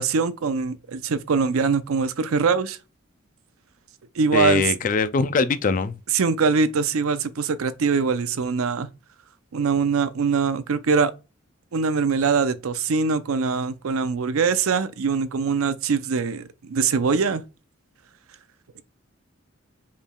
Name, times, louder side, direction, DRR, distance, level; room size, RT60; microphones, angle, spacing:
voice 1, 0.0-2.8 4.2-4.6 6.1-8.9 9.5-11.1 11.7-17.4, right 5 dB, 85° right, 0.5 m, -23 dB
voice 2, 4.3-6.0, left 4 dB, 40° left, 0.3 m, -22 dB
5.1 x 3.3 x 2.2 m
head